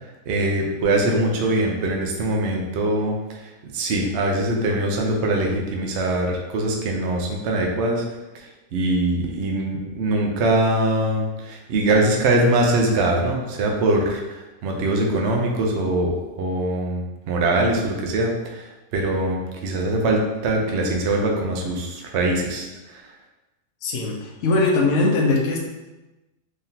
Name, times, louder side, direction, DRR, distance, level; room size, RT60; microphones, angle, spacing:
voice 1, 0.3-3.2 3.6-8.0 8.7-14.2 14.6-18.6 18.9-23.0, right 1 dB, 60° right, 0 dB, 0.8 m, -22 dB
voice 2, 23.8-25.6, left 3 dB, 60° left, -1 dB, 0.9 m, -20 dB
3.8 x 3.3 x 2.8 m, 1.1 s
omnidirectional pair, 1.6 m